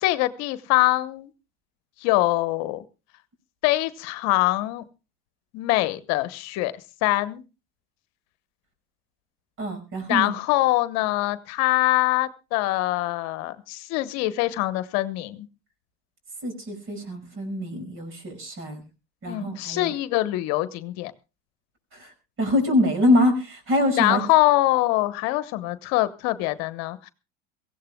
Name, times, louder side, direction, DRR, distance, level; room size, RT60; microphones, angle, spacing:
voice 1, 0.0-1.3 2.0-2.8 3.6-4.9 5.5-6.7 7.0-7.4 10.1-15.5 19.3-21.1 24.0-27.1, left 17 dB, 60° left, 14 dB, 1.0 m, -23 dB
voice 2, 9.6-10.4 16.4-18.8 19.2-19.9 21.9-22.1 22.4-24.2, left 1 dB, 45° right, 8 dB, 5.6 m, -24 dB
23.0 x 16.0 x 2.2 m, 0.30 s
hypercardioid pair, 85°, 30 cm